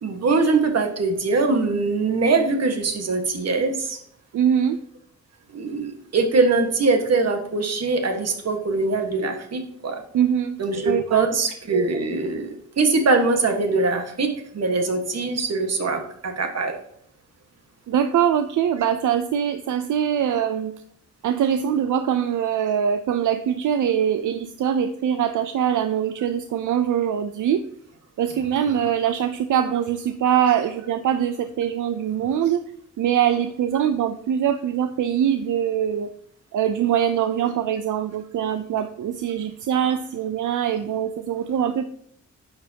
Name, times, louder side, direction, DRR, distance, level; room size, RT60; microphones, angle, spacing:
voice 1, 0.0-4.0 5.5-10.0 10.6-16.8, right 3 dB, 55° right, 5 dB, 1.5 m, -22 dB
voice 2, 4.3-4.8 10.1-10.6 10.9-11.3 17.9-20.7 21.2-27.6 28.2-32.6 33.0-36.1 36.5-41.8, right 9 dB, 80° right, 10 dB, 0.6 m, -23 dB
10.5 x 7.1 x 2.8 m, 0.68 s
wide cardioid pair, 145°, 30 cm